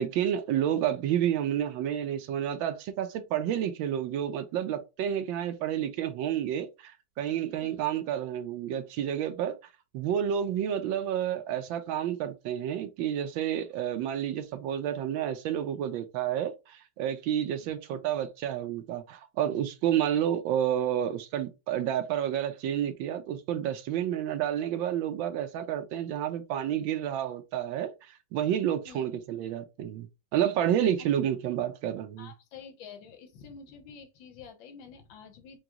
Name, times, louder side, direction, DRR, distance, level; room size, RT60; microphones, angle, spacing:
voice 1, 0.0-9.5 9.9-27.9 28.3-30.1 30.3-32.3, right 10 dB, 80° right, 1.4 m, -30 dB
voice 2, 32.2-35.6, left 6 dB, 75° left, 1.6 m, -48 dB
4.9 x 2.3 x 2.9 m
omnidirectional pair, 2.1 m